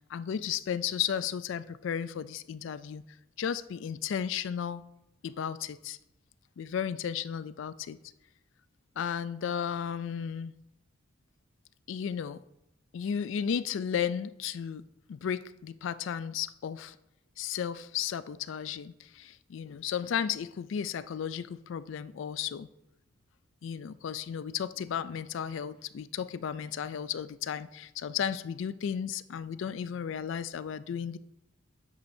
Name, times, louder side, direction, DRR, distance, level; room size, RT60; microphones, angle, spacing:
voice 1, 0.1-3.0 3.4-4.8 5.2-6.0 6.6-8.0 9.0-10.5 11.9-12.4 12.9-14.8 15.1-17.0 17.4-22.7 23.6-31.2, left 8 dB, 65° left, 15 dB, 0.3 m, -34 dB
10.0 x 8.5 x 2.7 m, 0.85 s
head